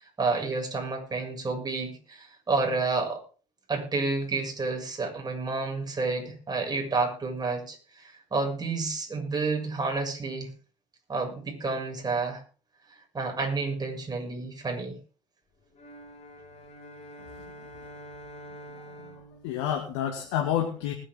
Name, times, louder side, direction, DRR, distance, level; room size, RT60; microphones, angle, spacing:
voice 1, 0.2-3.2 3.7-10.5 11.1-12.4 13.1-15.0, right 3 dB, 25° right, 2 dB, 6.9 m, -30 dB
sound 1, 15.7-20.4, equal, 45° left, 6.0 m, -47 dB
voice 2, 18.7-20.9, left 10 dB, 80° left, 2 dB, 2.4 m, -30 dB
20.5 x 9.8 x 3.8 m, 0.38 s
hypercardioid pair, 65°, 15 cm